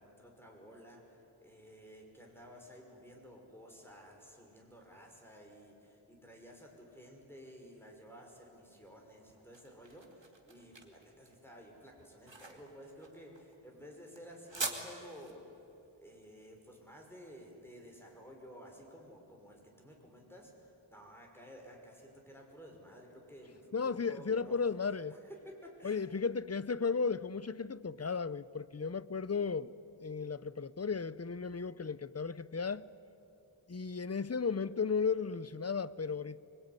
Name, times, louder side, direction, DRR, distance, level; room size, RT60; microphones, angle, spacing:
voice 1, 0.0-15.4 16.0-24.6 25.1-26.2, equal, 5° left, 5.8 m, -54 dB
sound 1, 9.0-18.1, right 3 dB, 65° right, 2.7 m, -46 dB
voice 2, 23.7-25.2 25.8-29.7 30.0-32.9 33.7-36.4, left 5 dB, 30° left, 0.6 m, -35 dB
25.0 x 22.5 x 9.7 m
wide cardioid pair, 40°, 48 cm